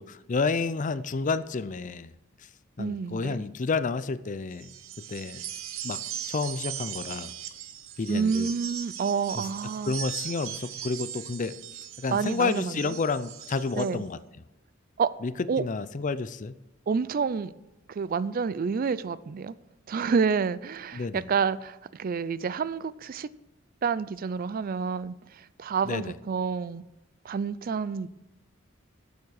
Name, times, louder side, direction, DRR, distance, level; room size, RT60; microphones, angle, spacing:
voice 1, 0.0-2.1 2.8-4.7 5.1-5.4 5.8-6.0 6.3-7.3 8.0-8.5 9.9-11.6 12.0-14.2 15.2-15.3 15.6-16.5 20.9-21.2 25.8-26.1, left 4 dB, 40° left, 0.5 m, -30 dB
voice 2, 2.8-3.4 8.1-9.9 12.1-12.9 13.8-14.0 15.0-15.1 15.5-15.6 16.9-17.5 17.9-19.5 19.9-23.3 23.8-26.8 27.2-28.1, right 5 dB, 45° right, 0.4 m, -29 dB
sound 1, 4.5-13.9, right 10 dB, 85° right, 0.8 m, -39 dB
10.5 x 7.3 x 6.4 m
head